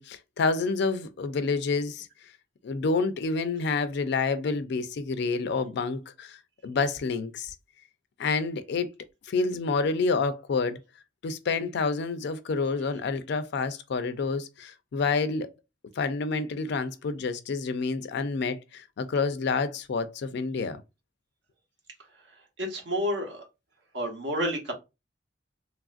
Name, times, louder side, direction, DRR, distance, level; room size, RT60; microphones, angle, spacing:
voice 1, 0.0-2.1 2.6-6.4 6.6-7.5 8.2-8.9 9.2-10.8 11.2-15.5 16.0-20.8, left 4 dB, 65° left, 0.4 m, -28 dB
voice 2, 22.6-23.4 23.9-24.7, equal, 70° right, 0.9 m, -29 dB
3.2 x 2.4 x 2.4 m
head